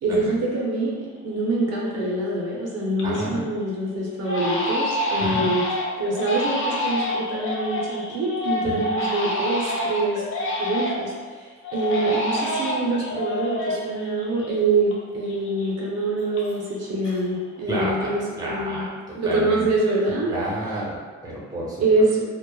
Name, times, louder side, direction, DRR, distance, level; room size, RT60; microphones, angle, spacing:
voice 1, 0.0-0.9 1.2-5.7 6.0-10.2 10.6-18.9 19.2-20.3 21.8-22.2, right 2 dB, 55° right, -3 dB, 0.6 m, -25 dB
Crying sobbing, 1.1-1.2 1.6-2.1 2.5-3.3 3.6-3.8 4.2-11.2 11.6-15.0 15.2-16.8 17.0-17.6, left 1 dB, 45° left, 0.6 m, -28 dB
voice 2, 3.0-3.4 5.2-5.5 8.6-8.8 17.7-18.1 18.4-18.9 19.2-19.7 20.3-21.8, right 1 dB, 10° right, -5 dB, 0.6 m, -30 dB
2.2 x 2.0 x 3.0 m, 1.5 s
cardioid pair, 90°, 30 cm